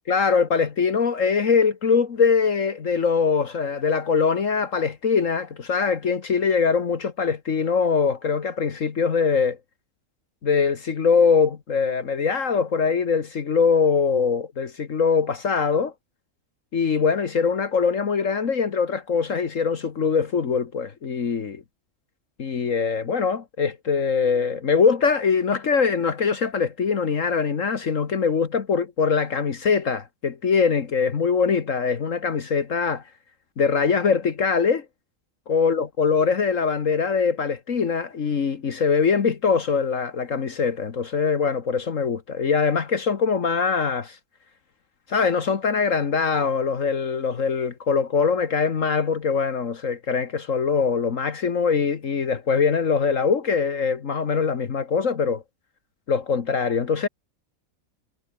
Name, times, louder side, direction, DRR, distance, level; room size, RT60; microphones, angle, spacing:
voice 1, 0.1-9.6 10.4-15.9 16.7-21.6 22.4-33.0 33.6-34.9 35.5-44.2 45.1-55.4 56.1-57.1, left 5 dB, 60° left, 1.8 m, -22 dB
omnidirectional pair, 1.5 m